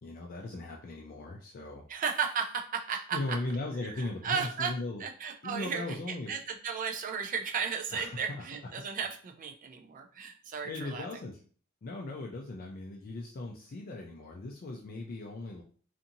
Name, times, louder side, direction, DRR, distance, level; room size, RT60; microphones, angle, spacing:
voice 1, 0.0-1.8 3.1-5.0 5.4-6.3 7.9-8.4 10.6-11.4 11.8-15.6, left 2 dB, 45° left, 0 dB, 0.4 m, -38 dB
voice 2, 1.9-3.4 3.8-4.7 5.0-11.1, right 6 dB, 40° right, 3 dB, 0.4 m, -35 dB
2.7 x 2.5 x 2.6 m, 0.43 s
head